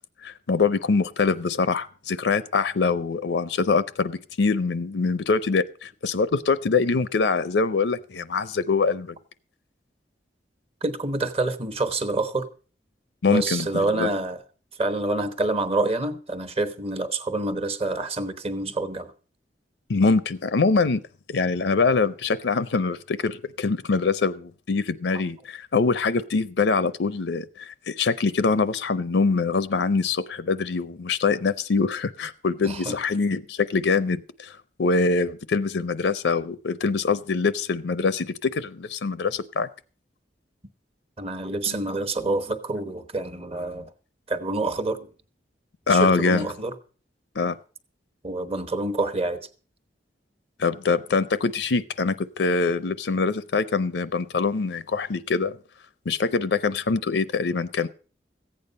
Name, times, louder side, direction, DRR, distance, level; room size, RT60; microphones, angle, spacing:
voice 1, 0.2-9.1 13.2-14.1 19.9-21.0 21.3-39.7 41.7-41.8 45.9-46.5 47.4-47.6 50.6-55.6 56.1-57.9, left 4 dB, 80° left, 0.6 m, -24 dB
voice 2, 10.8-12.5 13.3-14.4 14.8-19.1 32.6-33.0 41.2-43.9 44.3-45.1 45.9-46.7 48.2-49.5, right 2 dB, 35° right, 1.0 m, -27 dB
15.0 x 8.7 x 5.3 m
head